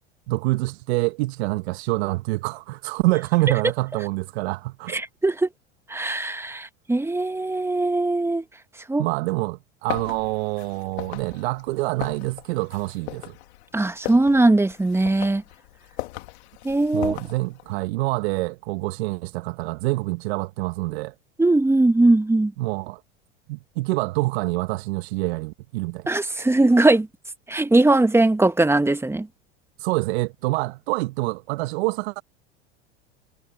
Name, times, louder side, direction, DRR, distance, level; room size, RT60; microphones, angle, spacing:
voice 1, 0.3-5.0 9.0-13.4 16.9-21.1 22.6-23.0 23.5-26.1 26.4-26.5 29.8-32.2, right 21 dB, 65° right, 1.3 m, -26 dB
voice 2, 4.9-5.5 5.9-8.4 8.9-9.1 13.7-15.4 16.6-17.1 21.4-22.5 26.1-27.1 27.5-29.3, right 2 dB, 5° right, 1.6 m, -20 dB
sound 1, 9.9-17.7, left 18 dB, 70° left, 2.4 m, -38 dB
hypercardioid pair, 90°, 34 cm